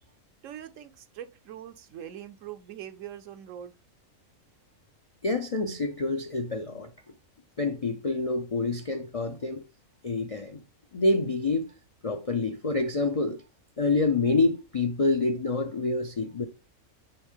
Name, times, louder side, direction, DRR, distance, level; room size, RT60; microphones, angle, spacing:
voice 1, 0.4-3.7, right 10 dB, 70° right, 1.0 m, -42 dB
voice 2, 5.2-6.9 7.6-9.6 10.0-10.6 10.9-11.6 12.0-13.4 13.8-16.4, left 3 dB, 45° left, 0.4 m, -27 dB
9.7 x 3.7 x 3.6 m
omnidirectional pair, 1.5 m